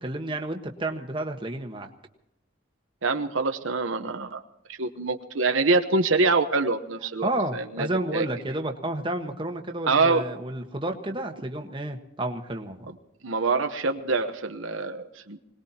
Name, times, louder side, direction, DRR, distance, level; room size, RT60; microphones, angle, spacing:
voice 1, 0.0-1.9 7.2-12.9, right 1 dB, 25° right, 4 dB, 1.3 m, -31 dB
voice 2, 3.0-4.4 4.7-8.3 9.9-10.2 13.2-15.4, right 3 dB, 85° right, 7 dB, 1.0 m, -25 dB
25.5 x 19.5 x 2.9 m, 0.83 s
head